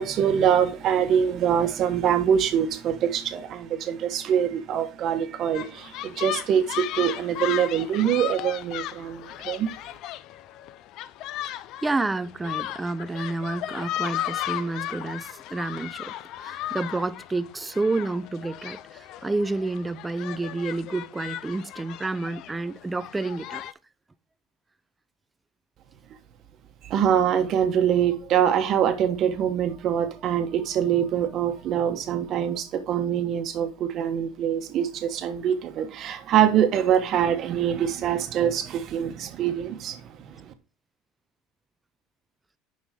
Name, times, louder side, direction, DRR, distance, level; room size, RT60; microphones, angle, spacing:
voice 1, 0.0-9.7 26.8-40.5, right 9 dB, 45° right, 1.1 m, -24 dB
sound 1, 5.5-23.7, left 13 dB, 55° left, 0.5 m, -36 dB
voice 2, 11.8-16.1 16.4-23.6, right 3 dB, 10° right, 0.4 m, -29 dB
6.2 x 5.5 x 5.2 m
cardioid pair, 135°, 0 cm